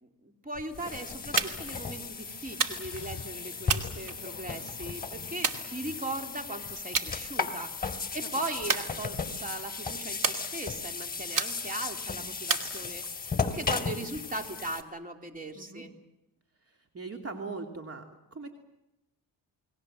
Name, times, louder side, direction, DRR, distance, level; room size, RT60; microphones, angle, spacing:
voice 1, 0.0-15.9, right 2 dB, 20° right, 4 dB, 3.4 m, -39 dB
sound 1, 0.6-14.8, left 5 dB, 20° left, 2.9 m, -36 dB
sound 2, 0.9-6.6, left 5 dB, 35° left, 5.0 m, -50 dB
sound 3, 1.4-1.8 2.6-3.1 3.7-4.6 5.4-6.2 6.9-7.1 7.5-7.9 8.7-9.5 10.2-10.9 11.4-11.9 12.5-13.3, right 5 dB, 50° right, 2.6 m, -32 dB
voice 2, 16.7-18.0 18.3-18.5, right 4 dB, 35° right, 3 dB, 2.8 m, -40 dB
29.5 x 21.5 x 7.7 m, 0.92 s
cardioid pair, 90°, 39 cm